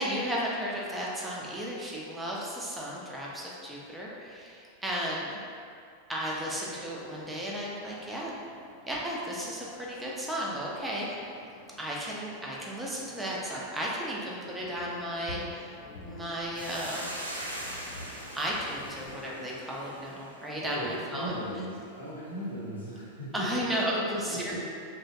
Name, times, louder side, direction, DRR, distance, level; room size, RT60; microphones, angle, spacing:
voice 1, 0.0-5.4 6.1-8.3 8.9-11.4 11.8-15.7 16.0-17.1 18.3-21.3 23.3-24.6, equal, 10° right, -4 dB, 0.4 m, -34 dB
sound 1, 6.3-20.1, left 2 dB, 45° left, 0.4 m, -50 dB
Hiss, 16.5-21.1, right 1 dB, 85° right, 0.4 m, -41 dB
voice 2, 20.6-23.5 23.7-24.6, equal, 80° left, -8 dB, 0.8 m, -37 dB
3.0 x 2.1 x 2.6 m, 2.3 s
figure-of-eight pair, 90°, 0 cm